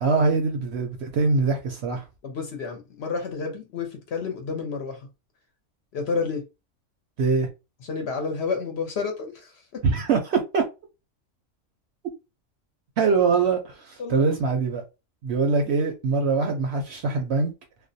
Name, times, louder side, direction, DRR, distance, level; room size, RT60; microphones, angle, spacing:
voice 1, 0.0-2.0 7.2-7.5 9.8-10.6 13.0-14.8 15.2-17.5, right 4 dB, 65° right, 0.7 m, -23 dB
voice 2, 2.2-5.0 5.9-6.4 7.8-9.8 13.1-13.2 14.0-14.3, left 4 dB, 60° left, 0.8 m, -30 dB
2.4 x 2.0 x 2.6 m
omnidirectional pair, 1.4 m